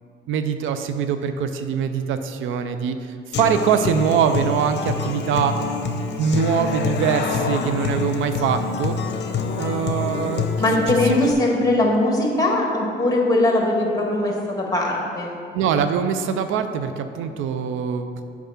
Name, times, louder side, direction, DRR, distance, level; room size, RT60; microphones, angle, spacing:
voice 1, 0.3-5.5 5.9-9.0 9.5-11.2 15.5-18.2, right 7 dB, 85° right, 9 dB, 0.5 m, -23 dB
Human voice / Acoustic guitar, 3.3-11.3, left 4 dB, 60° left, 0.7 m, -26 dB
voice 2, 10.6-15.3, left 1 dB, 20° left, -1 dB, 1.6 m, -20 dB
7.0 x 4.8 x 5.7 m, 2.4 s
cardioid pair, 90°, 20 cm